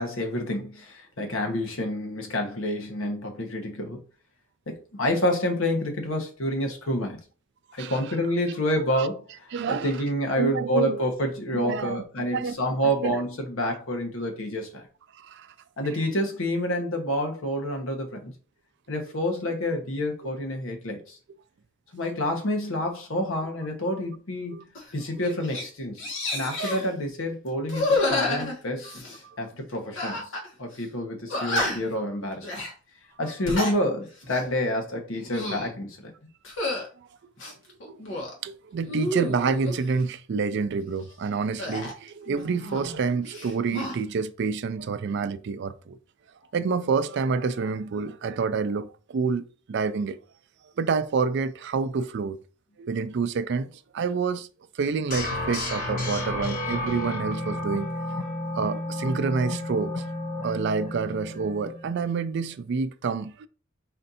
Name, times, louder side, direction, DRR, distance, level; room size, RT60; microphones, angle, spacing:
voice 1, 0.0-4.0 4.7-7.2 7.7-14.9 15.8-18.3 18.9-21.2 21.9-26.1 26.3-28.9 29.4-30.3 30.6-32.6 33.2-36.1, left 1 dB, 90° left, 1.2 m, -28 dB
voice 2, 9.5-10.0 10.4-11.0 11.5-12.6 12.8-13.2 15.2-15.5 24.5-24.6 29.2-29.4 37.0-37.1 37.8-38.0 38.4-46.0 46.5-50.2 50.8-52.4 52.8-54.5 54.7-57.9 58.6-60.0 60.4-63.5, right 5 dB, 60° right, 0.4 m, -28 dB
sound 1, 24.7-24.9 25.2-25.6 26.0-26.9 27.7-29.2 30.0-30.5 30.7-30.8 31.3-32.0 32.4-32.7 33.3-33.8 34.2-34.5 35.1-35.7 36.4-36.9 37.4-38.3 38.8-39.8 41.6-43.0 43.3-44.0, left 2 dB, 65° left, 1.4 m, -30 dB
sound 2, 55.1-62.0, left 1 dB, 45° left, 1.2 m, -32 dB
4.3 x 2.6 x 4.1 m
head